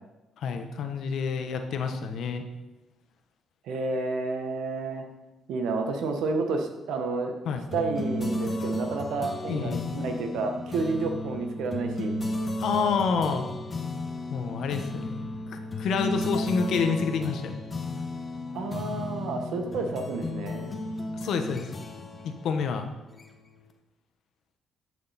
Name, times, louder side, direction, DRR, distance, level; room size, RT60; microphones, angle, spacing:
voice 1, 0.4-2.4 7.4-7.6 9.5-9.9 12.6-13.5 14.3-17.5 21.2-21.7 22.2-22.9, left 5 dB, 75° left, 6 dB, 1.2 m, -28 dB
voice 2, 3.6-5.0 5.5-7.3 7.7-12.2 18.5-20.7, right 3 dB, 85° right, 5 dB, 1.4 m, -30 dB
sound 1, 7.7-23.6, left 1 dB, 35° left, 1.3 m, -34 dB
13.0 x 6.6 x 4.3 m, 1.0 s
cardioid pair, 90°, 0 cm